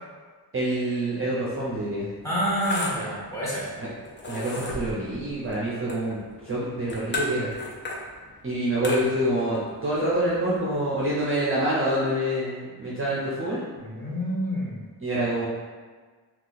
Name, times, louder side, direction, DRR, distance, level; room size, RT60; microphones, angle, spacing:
voice 1, 0.5-2.1 3.8-3.9 4.3-7.6 8.4-13.6 15.0-15.5, right 1 dB, 35° right, -7 dB, 0.6 m, -26 dB
sound 1, 1.4-11.3, left 1 dB, 30° left, 0.5 m, -37 dB
voice 2, 2.2-3.7 13.8-14.8, equal, 5° left, -8 dB, 1.1 m, -28 dB
2.9 x 2.3 x 4.0 m, 1.5 s
wide cardioid pair, 135°, 39 cm